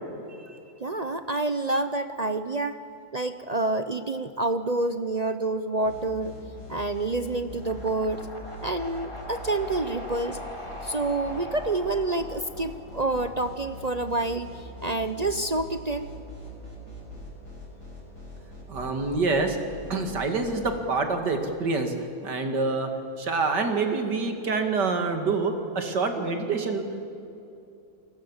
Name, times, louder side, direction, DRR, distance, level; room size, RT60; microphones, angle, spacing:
voice 1, 0.8-2.8 3.1-6.3 6.7-8.3 8.6-10.4 10.8-16.1, right 2 dB, 45° right, 10 dB, 0.5 m, -28 dB
sound 1, 5.8-20.8, left 1 dB, 70° left, 7.0 m, -42 dB
sound 2, 7.6-13.7, left 1 dB, 15° left, 3.5 m, -41 dB
voice 2, 18.7-19.6 19.9-21.9 22.2-22.9 23.2-26.9, right 3 dB, 90° right, 5 dB, 2.8 m, -26 dB
29.5 x 19.5 x 7.3 m, 2.6 s
omnidirectional pair, 1.8 m